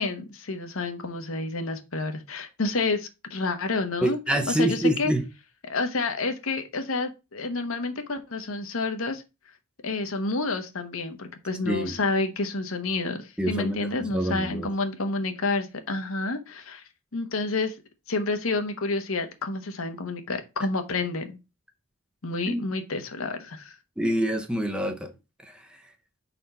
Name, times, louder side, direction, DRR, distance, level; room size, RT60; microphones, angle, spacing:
voice 1, 0.0-4.2 4.5-5.1 5.6-9.2 9.8-16.8 17.1-17.7 18.1-21.4 22.2-23.7, left 3 dB, 75° left, 1.0 m, -29 dB
voice 2, 4.0-5.2 11.6-12.0 13.4-14.7 22.5-22.6 24.0-25.1 25.4-25.5, right 1 dB, 5° right, 0.7 m, -26 dB
4.5 x 4.2 x 5.4 m
head